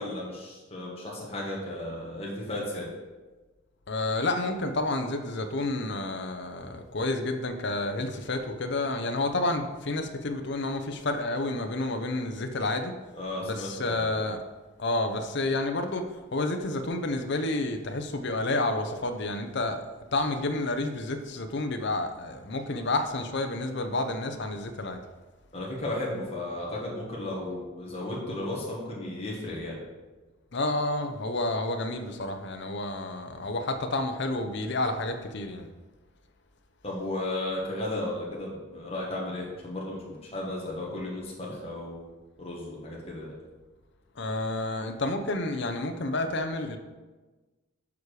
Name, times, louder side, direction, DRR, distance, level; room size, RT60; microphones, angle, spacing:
voice 1, 0.0-2.9 13.2-14.2 25.5-29.8 36.8-42.1 42.4-43.4, left 1 dB, 30° left, -4 dB, 1.6 m, -34 dB
voice 2, 3.9-13.0 13.4-14.4 14.8-19.8 20.1-25.0 30.5-35.7 44.2-46.8, left 2 dB, 55° left, 7 dB, 0.7 m, -30 dB
7.0 x 4.8 x 4.8 m, 1.2 s
head